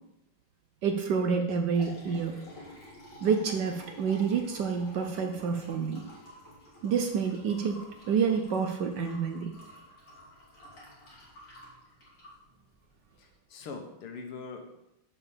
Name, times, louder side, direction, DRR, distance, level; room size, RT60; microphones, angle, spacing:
voice 1, 0.8-2.4 3.2-6.0 6.8-7.8 8.1-9.5, right 6 dB, 65° right, 5 dB, 1.2 m, -28 dB
Liquid, 1.4-13.3, left 1 dB, 40° left, 3.0 m, -51 dB
voice 2, 13.2-14.8, left 4 dB, 85° left, 4 dB, 2.0 m, -42 dB
6.9 x 4.9 x 7.0 m, 0.87 s
omnidirectional pair, 2.4 m